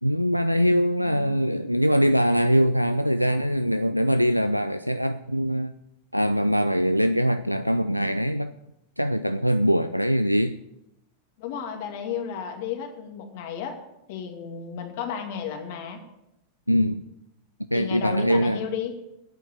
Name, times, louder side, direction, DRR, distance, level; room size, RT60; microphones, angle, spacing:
voice 1, 0.0-5.7 6.1-8.5 9.0-10.6 16.7-17.0 17.7-18.6, equal, 90° left, 0.4 m, -22 dB
voice 2, 11.4-13.8 14.1-16.0 17.7-19.0, left 7 dB, 50° left, 2.4 m, -33 dB
10.5 x 8.6 x 8.7 m
figure-of-eight pair, 90°, 0 cm